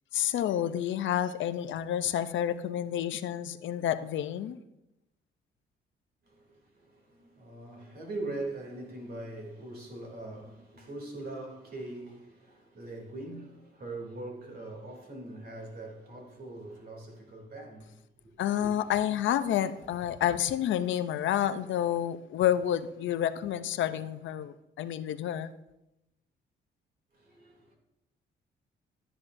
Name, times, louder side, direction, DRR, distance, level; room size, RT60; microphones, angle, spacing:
voice 1, 0.1-4.6 18.4-25.5, left 10 dB, 75° left, 0.6 m, -29 dB
voice 2, 6.2-18.0 18.6-18.7 27.1-27.8, right 2 dB, 50° right, 2.9 m, -42 dB
12.0 x 9.8 x 2.6 m
cardioid pair, 90°, 20 cm